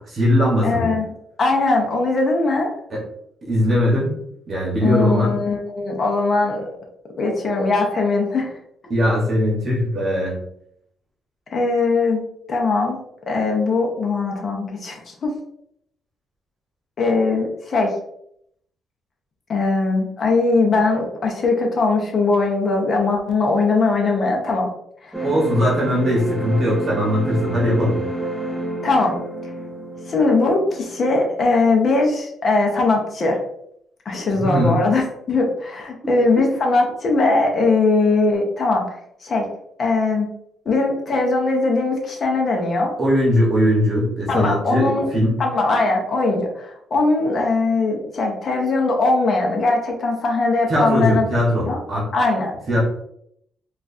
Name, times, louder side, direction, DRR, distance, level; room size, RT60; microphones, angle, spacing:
voice 1, 0.1-0.9 2.9-3.0 3.4-4.1 4.5-5.4 8.9-10.4 25.2-28.0 34.4-34.8 36.0-36.2 43.0-45.4 50.7-52.1 52.7-52.8, equal, 40° right, -4 dB, 1.0 m, -20 dB
voice 2, 0.6-1.0 1.4-2.7 4.8-6.7 7.2-8.5 11.5-12.2 12.5-13.0 13.3-15.3 17.0-17.9 19.5-24.7 25.0-25.1 28.8-29.2 30.1-33.4 34.1-38.8 39.2-39.5 39.8-40.3 40.7-42.9 44.3-45.1 45.4-51.3 51.7-51.8 52.1-52.5, left 3 dB, 40° left, 1 dB, 0.7 m, -20 dB
sound 1, 25.1-32.1, right 1 dB, ahead, 0.5 m, -30 dB
4.4 x 2.4 x 2.6 m, 0.73 s
cardioid pair, 150°, 0 cm